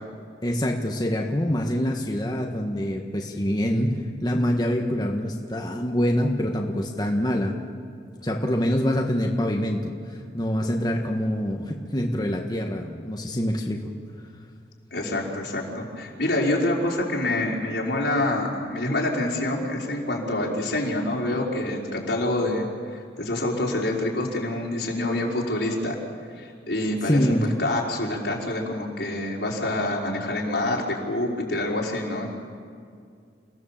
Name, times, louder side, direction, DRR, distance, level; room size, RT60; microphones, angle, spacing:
voice 1, 0.4-7.6 8.2-13.9 27.1-27.5, equal, 25° left, 1 dB, 1.4 m, -25 dB
voice 2, 14.9-26.0 26.4-27.2 27.6-32.3, left 1 dB, 80° left, -3 dB, 4.7 m, -26 dB
29.5 x 17.0 x 7.4 m, 2.3 s
head